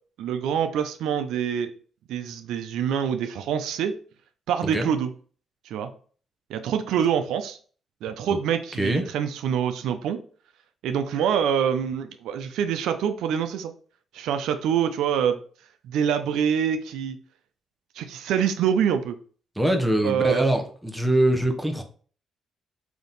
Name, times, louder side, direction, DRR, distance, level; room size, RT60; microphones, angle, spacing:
voice 1, 0.2-1.7 2.1-4.0 4.5-5.1 5.7-5.9 6.5-7.6 8.0-10.2 10.8-13.7 14.1-15.4 15.8-17.2 18.0-19.2 20.0-20.5, right 8 dB, 85° right, 8 dB, 0.4 m, -25 dB
voice 2, 19.6-21.8, right 1 dB, 5° right, 4 dB, 0.8 m, -23 dB
3.5 x 2.8 x 4.0 m, 0.42 s
cardioid pair, 90°, 0 cm